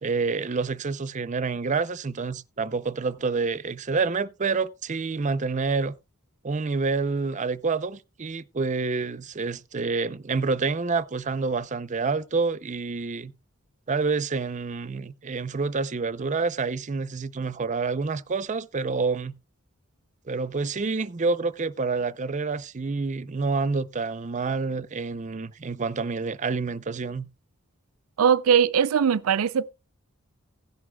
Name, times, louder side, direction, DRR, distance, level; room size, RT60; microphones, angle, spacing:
voice 1, 0.0-5.9 6.4-13.3 13.9-19.4 20.3-27.3, right 4 dB, 35° right, 0.5 m, -28 dB
voice 2, 28.2-29.7, right 7 dB, 85° right, 0.4 m, -20 dB
16.0 x 11.0 x 2.3 m
head